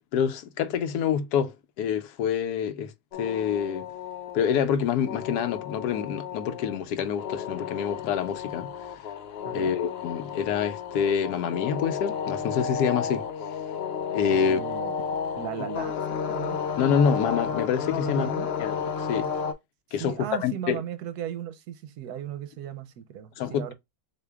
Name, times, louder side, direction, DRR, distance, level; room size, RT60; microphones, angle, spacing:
voice 1, 0.1-3.9 4.3-9.0 9.5-13.3 14.1-14.6 16.8-18.3 18.6-19.3 19.9-20.8 23.4-23.7, left 7 dB, 90° left, 1.1 m, -27 dB
sound 1, 3.1-19.5, left 7 dB, 60° left, 0.7 m, -32 dB
voice 2, 14.3-14.9 15.4-16.6 17.9-18.5 19.9-23.7, right 10 dB, 80° right, 1.2 m, -37 dB
6.5 x 2.5 x 2.3 m
omnidirectional pair, 1.6 m